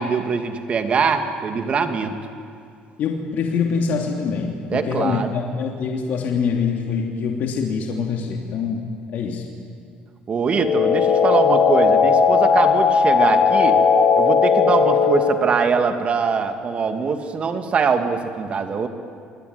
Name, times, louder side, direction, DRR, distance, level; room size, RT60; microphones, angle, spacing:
voice 1, 0.0-2.1 4.7-5.3 10.3-13.8 14.2-18.9, right 5 dB, 40° right, 7 dB, 2.6 m, -22 dB
voice 2, 3.0-8.8 9.1-9.5, left 5 dB, 60° left, 1 dB, 2.9 m, -24 dB
sound 1, 10.5-15.5, left 5 dB, 40° left, 2.7 m, -17 dB
27.5 x 21.5 x 9.7 m, 2.5 s
cardioid pair, 100°, 3 cm